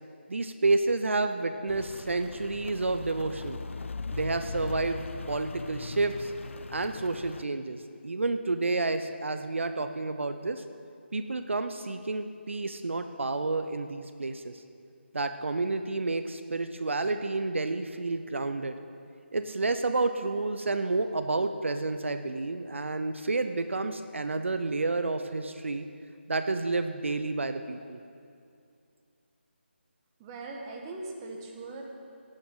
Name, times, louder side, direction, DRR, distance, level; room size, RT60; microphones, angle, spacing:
voice 1, 0.3-3.6 4.1-6.3 6.7-10.6 11.1-14.6 15.1-18.8 19.3-25.9 26.3-28.0, right 3 dB, 75° right, 9 dB, 0.7 m, -30 dB
Rain, 1.7-7.4, left 4 dB, 80° left, 0.4 m, -39 dB
voice 2, 30.2-31.8, right 2 dB, 20° right, 0 dB, 1.3 m, -40 dB
16.5 x 9.0 x 5.6 m, 2.5 s
figure-of-eight pair, 160°, 7 cm